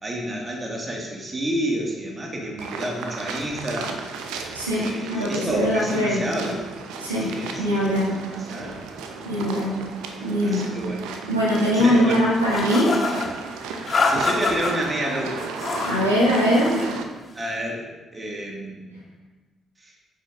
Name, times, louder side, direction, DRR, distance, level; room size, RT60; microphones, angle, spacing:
voice 1, 0.0-4.0 4.8-6.6 7.2-9.2 10.4-11.0 11.5-12.2 14.0-15.5 17.3-19.0 19.8-19.9, equal, 25° right, -1 dB, 2.0 m, -30 dB
sound 1, 2.6-17.0, right 4 dB, 70° right, 0.8 m, -35 dB
voice 2, 4.5-6.2 7.0-8.2 9.2-9.8 10.2-10.7 11.3-12.9 15.9-16.7, equal, 90° right, -7 dB, 1.9 m, -21 dB
sound 2, 12.5-13.3 13.9-14.7 15.4-16.0 16.3-16.9, left 3 dB, 45° left, 1.5 m, -25 dB
9.8 x 8.0 x 2.6 m, 1.2 s
figure-of-eight pair, 40°, 0 cm